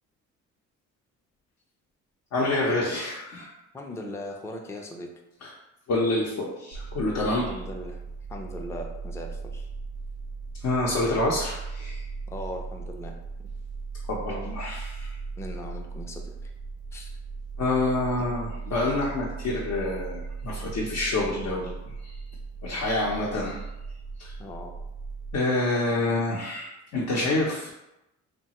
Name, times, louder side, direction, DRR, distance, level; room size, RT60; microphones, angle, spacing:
voice 1, 2.3-3.5 5.4-5.5 5.9-7.6 10.6-12.0 14.1-15.2 17.6-21.8 22.0-22.1 22.6-23.6 24.2-24.3 25.3-27.7, left 2 dB, 65° left, -4 dB, 0.6 m, -27 dB
voice 2, 3.7-5.1 7.4-8.0 8.3-9.7 12.3-13.1 13.4-13.5 15.4-16.5 16.9-17.1 24.4-24.8, left 1 dB, 10° left, 2 dB, 0.3 m, -39 dB
sound 1, 6.7-25.4, right 4 dB, 90° right, 0.6 m, -37 dB
3.0 x 2.2 x 2.8 m, 0.91 s
cardioid pair, 90°, 30 cm